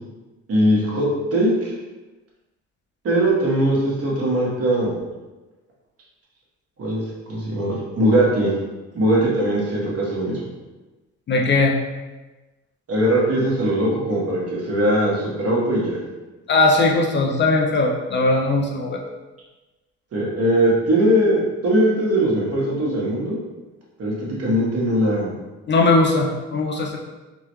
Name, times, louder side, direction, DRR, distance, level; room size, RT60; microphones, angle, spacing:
voice 1, 0.5-1.7 3.0-5.0 6.8-7.0 7.3-8.5 8.9-10.4 12.9-16.0 20.1-23.4 24.0-25.3, right 1 dB, 50° right, -5 dB, 1.2 m, -20 dB
voice 2, 11.3-11.8 16.5-19.0 25.7-27.0, left 2 dB, 40° left, 1 dB, 0.4 m, -19 dB
3.6 x 2.1 x 3.0 m, 1.2 s
cardioid pair, 90°, 30 cm